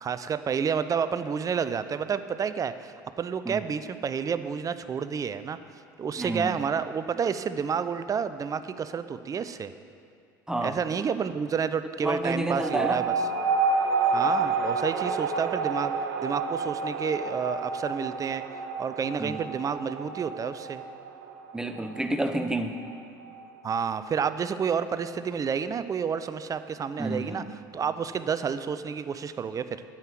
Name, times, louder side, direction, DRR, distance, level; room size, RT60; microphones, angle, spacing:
voice 1, 0.0-5.6 6.0-9.7 10.6-13.1 14.1-15.9 16.2-18.4 18.8-20.8 23.6-27.4 27.7-29.8, right 6 dB, 30° right, 12 dB, 0.6 m, -30 dB
voice 2, 6.2-6.5 10.5-10.8 12.0-13.0 19.2-19.4 21.5-22.8 27.0-27.5, right 1 dB, 5° right, 7 dB, 0.9 m, -29 dB
sound 1, 12.6-23.5, right 4 dB, 70° right, 0.8 m, -29 dB
9.7 x 7.5 x 7.6 m, 2.5 s
hypercardioid pair, 70°, 11 cm